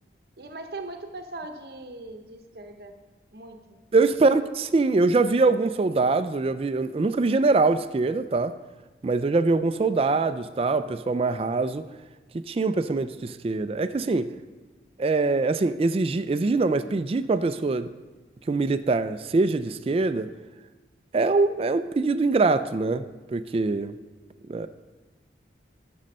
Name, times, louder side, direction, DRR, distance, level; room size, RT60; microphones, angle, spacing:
voice 1, 0.4-2.9 3.3-4.3, right 2 dB, 60° right, 7 dB, 0.8 m, -40 dB
voice 2, 3.9-8.5 9.0-11.9 12.5-14.3 15.0-17.9 18.5-20.3 21.1-23.0 23.3-23.9 24.5-24.7, right 3 dB, 30° right, 12 dB, 0.3 m, -23 dB
12.0 x 6.2 x 5.4 m, 1.2 s
head